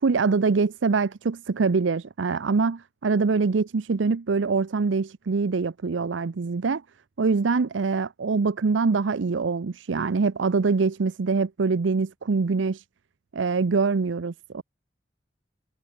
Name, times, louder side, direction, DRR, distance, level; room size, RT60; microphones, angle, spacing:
voice 1, 0.0-6.8 7.2-12.8 13.3-14.6, right 4 dB, 85° right, 0.6 m, -24 dB
head